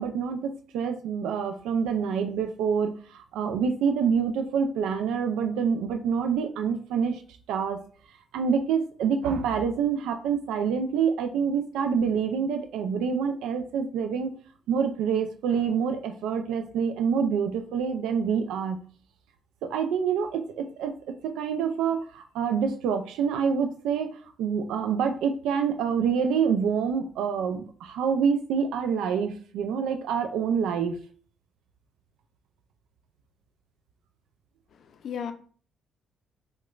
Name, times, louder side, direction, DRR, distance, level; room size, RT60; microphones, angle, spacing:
voice 1, 0.0-7.2 7.5-7.8 8.3-14.3 14.7-18.8 19.6-20.9 21.2-31.0, right 6 dB, 90° right, 0.3 m, -27 dB
voice 2, 34.7-35.3, left 7 dB, 60° left, 0.4 m, -35 dB
4.8 x 2.1 x 2.3 m
cardioid pair, 90°, 0 cm